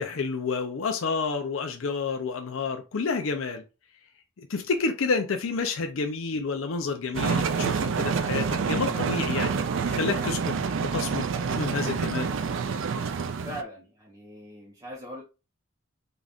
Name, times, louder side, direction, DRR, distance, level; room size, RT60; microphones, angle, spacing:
voice 1, 0.0-3.6 4.4-9.5 9.9-10.5 10.8-12.3, left 4 dB, 70° left, 0.5 m, -29 dB
sound 1, 7.1-13.6, right 5 dB, 60° right, 0.4 m, -27 dB
voice 2, 13.4-15.2, equal, 20° right, 0.8 m, -40 dB
3.9 x 2.4 x 3.4 m
head